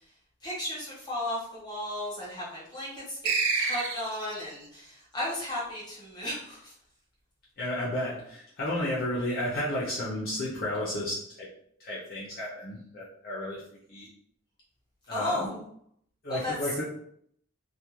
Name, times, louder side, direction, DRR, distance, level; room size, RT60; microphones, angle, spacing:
voice 1, 0.4-6.7 15.1-15.6 16.3-16.5, left 1 dB, 20° left, -6 dB, 0.9 m, -35 dB
sound 1, 3.2-4.4, right 4 dB, 80° right, 0.5 m, -28 dB
voice 2, 7.6-11.5 11.8-14.1 15.1-15.6 16.2-16.8, left 1 dB, 45° left, -7 dB, 0.5 m, -32 dB
2.3 x 2.2 x 2.9 m, 0.68 s
head